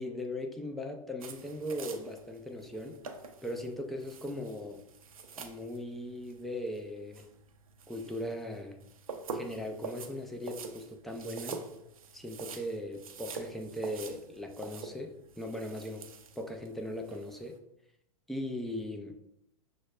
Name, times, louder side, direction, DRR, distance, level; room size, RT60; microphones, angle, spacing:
voice 1, 0.0-3.0 3.4-4.8 5.4-7.3 7.9-8.8 9.3-11.6 12.1-16.1 16.4-17.6 18.3-19.2, left 1 dB, ahead, 4 dB, 0.3 m, -39 dB
sound 1, 1.2-17.5, right 4 dB, 75° right, 0.5 m, -46 dB
6.0 x 2.1 x 2.3 m, 0.83 s
figure-of-eight pair, 95°, 18 cm